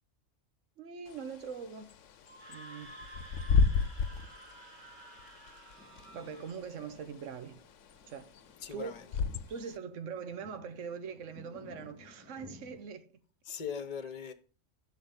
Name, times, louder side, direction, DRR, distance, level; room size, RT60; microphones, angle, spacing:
voice 1, 0.8-1.9 2.5-2.9 5.8-7.6 8.1-8.3 8.7-9.0 9.5-13.1, right 6 dB, 75° right, 1.3 m, -42 dB
Bird / Wind, 1.1-9.8, left 5 dB, 75° left, 1.1 m, -33 dB
Screaming, 2.2-6.6, right 1 dB, 40° right, 2.2 m, -52 dB
sound 1, 5.8-12.8, left 4 dB, 5° right, 2.6 m, -57 dB
voice 2, 8.6-9.0 13.5-14.3, left 7 dB, 35° left, 1.0 m, -39 dB
12.0 x 4.8 x 8.1 m
omnidirectional pair, 1.3 m